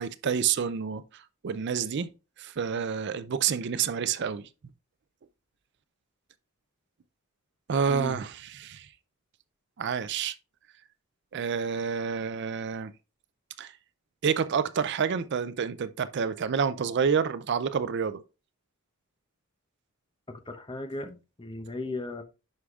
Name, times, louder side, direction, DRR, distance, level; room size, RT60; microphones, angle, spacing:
voice 1, 0.0-2.1 2.4-4.5 7.7-8.9 9.8-10.3 11.3-12.9 13.6-13.7 14.2-18.2, right 6 dB, 50° right, 0.4 m, -28 dB
voice 2, 20.3-22.2, left 2 dB, 20° left, 0.8 m, -36 dB
11.0 x 4.9 x 2.4 m
head